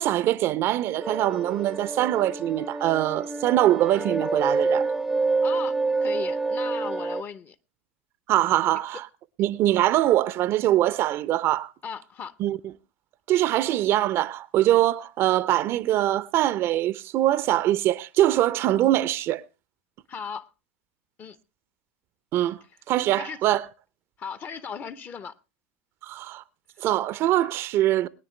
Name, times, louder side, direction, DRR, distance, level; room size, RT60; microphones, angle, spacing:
voice 1, 0.0-4.9 8.3-9.1 9.4-11.7 12.4-12.6 13.3-19.4 22.3-22.6 22.9-23.7 26.0-26.4 26.8-28.1, right 13 dB, 40° right, 0.6 m, -23 dB
sound 1, 1.0-7.2, right 3 dB, 5° right, 0.7 m, -27 dB
voice 2, 5.4-7.5 11.8-12.3 20.1-20.5 21.2-21.4 23.1-23.4 24.2-25.3, left 6 dB, 30° left, 0.8 m, -37 dB
21.5 x 9.7 x 3.2 m
figure-of-eight pair, 85°, 6 cm